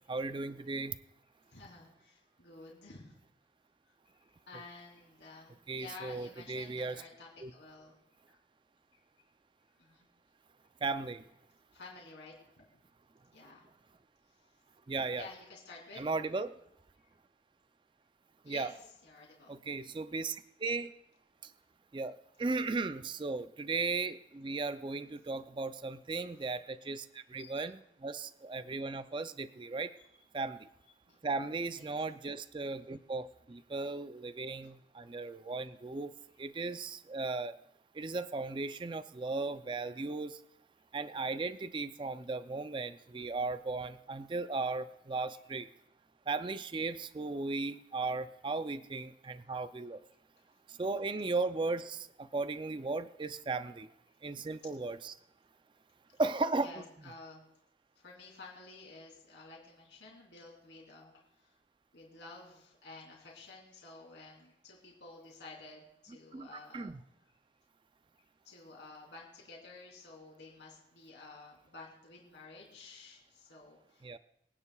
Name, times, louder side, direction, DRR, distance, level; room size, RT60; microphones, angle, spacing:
voice 1, 0.1-1.0 5.7-7.0 7.4-7.5 10.8-11.2 14.9-15.3 16.0-16.5 18.4-18.7 19.5-20.9 21.4-21.5 21.9-29.9 30.3-30.7 31.2-37.6 37.9-40.4 40.9-45.7 46.3-50.0 50.7-53.9 54.2-55.2 56.2-56.7 66.3-67.0 74.0-74.2, right 3 dB, 25° right, 12 dB, 0.4 m, -36 dB
voice 2, 1.5-3.2 3.9-8.0 8.3-8.4 9.8-10.1 11.7-12.7 13.3-13.7 14.4-14.5 15.2-16.1 17.0-17.1 18.4-19.6 26.3-26.5 27.4-27.6 29.9-30.2 31.1-31.2 31.7-31.9 34.6-34.7 50.4-50.8 56.6-57.5 57.9-61.5 61.9-66.9 68.4-74.2, left 3 dB, 75° left, -2 dB, 3.3 m, -52 dB
23.5 x 9.9 x 2.3 m, 0.79 s
head